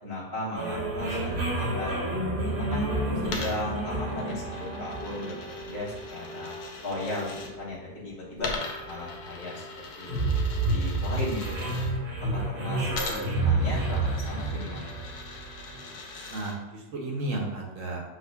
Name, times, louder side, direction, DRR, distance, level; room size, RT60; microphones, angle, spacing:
voice 1, 0.0-2.9 3.2-6.6 6.8-8.5 8.8-9.6 10.0-10.3 10.6-11.9 12.3-14.9, left 1 dB, 20° left, -8 dB, 1.0 m, -36 dB
sound 1, 0.6-16.0, right 2 dB, 85° right, 1.4 m, -30 dB
Coin (dropping), 3.2-7.5 8.4-11.9 12.9-16.6, left 3 dB, 85° left, 1.1 m, -40 dB
voice 2, 16.3-18.0, right 2 dB, 65° right, 0 dB, 1.0 m, -33 dB
6.1 x 2.1 x 2.2 m, 1.0 s
omnidirectional pair, 1.6 m